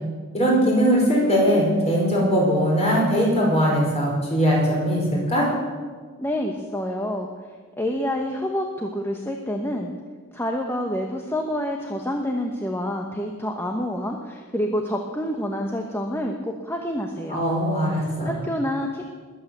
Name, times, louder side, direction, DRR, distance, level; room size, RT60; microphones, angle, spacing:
voice 1, 0.3-5.5 17.3-18.3, equal, 30° left, -2 dB, 5.6 m, -20 dB
voice 2, 6.2-7.3 7.8-9.9 10.3-17.4 17.9-19.0, left 1 dB, 10° left, 2 dB, 1.1 m, -28 dB
21.0 x 8.5 x 7.9 m, 1.5 s
head